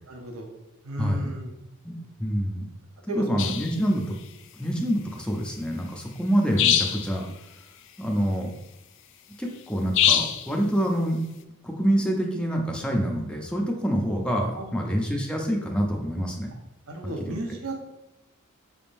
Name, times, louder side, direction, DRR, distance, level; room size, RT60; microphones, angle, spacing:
voice 1, 0.1-0.5 0.8-1.5 3.1-3.5 14.5-14.8 16.9-17.7, right 1 dB, 80° right, 2 dB, 0.8 m, -33 dB
voice 2, 1.0-1.3 1.8-2.6 3.1-4.2 4.6-7.3 8.0-8.5 9.4-11.2 11.6-16.5, equal, 5° left, 0 dB, 0.5 m, -26 dB
sound 1, 3.4-3.7 6.6-7.1 9.9-10.5, left 9 dB, 60° left, 0.3 m, -22 dB
5.1 x 3.5 x 2.6 m, 0.94 s
head